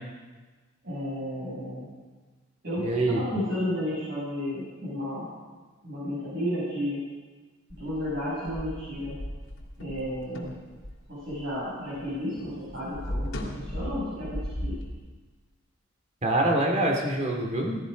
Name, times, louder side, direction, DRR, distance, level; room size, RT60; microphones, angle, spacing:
voice 1, 0.8-1.9 2.6-5.2 5.8-7.0 7.8-9.2 9.8-10.5 11.1-13.3 13.5-14.8, equal, 50° right, -9 dB, 6.5 m, -32 dB
voice 2, 2.8-3.2 16.2-17.9, right 1 dB, 35° right, 1 dB, 2.3 m, -25 dB
sound 1, 7.7-12.1 12.4-14.9, left 1 dB, 70° left, 3.1 m, -36 dB
18.0 x 14.0 x 5.1 m, 1.3 s
head